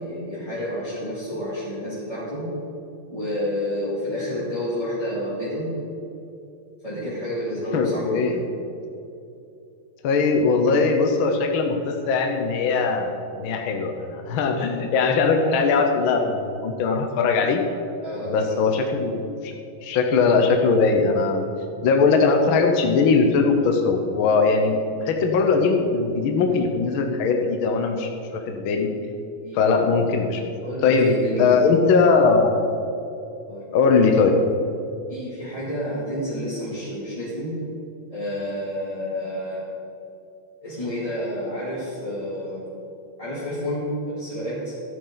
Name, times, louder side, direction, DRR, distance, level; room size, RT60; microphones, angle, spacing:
voice 1, 0.0-2.5 3.1-5.7 6.8-8.4 18.0-18.8 29.4-29.9 30.6-31.9 33.5-33.7 35.1-37.5 38.1-39.7 40.6-42.7 43.2-44.7, equal, 10° left, -11 dB, 2.5 m, -30 dB
voice 2, 7.7-8.4 10.0-17.6 18.3-19.5 19.8-21.5 21.8-24.8 25.0-28.9 29.5-30.4 30.8-32.6 33.7-34.3, left 4 dB, 70° left, 3 dB, 1.2 m, -20 dB
13.5 x 10.0 x 4.0 m, 2.8 s
omnidirectional pair, 3.4 m